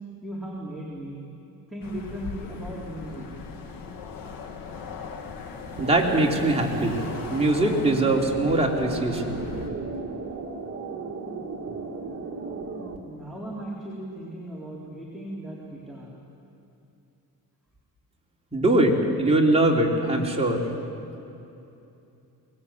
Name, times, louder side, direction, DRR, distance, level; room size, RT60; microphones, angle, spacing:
voice 1, 0.2-1.2 1.7-3.3 13.1-16.2, right 1 dB, ahead, -6 dB, 4.2 m, -37 dB
sound 1, 1.8-9.7, left 5 dB, 75° left, 2.5 m, -39 dB
voice 2, 5.8-7.0 7.3-9.4 18.5-20.6, right 2 dB, 15° right, -2 dB, 3.4 m, -22 dB
sound 2, 5.8-13.0, right 4 dB, 40° right, 2.5 m, -35 dB
23.5 x 20.0 x 8.6 m, 2.8 s
cardioid pair, 115°, 35 cm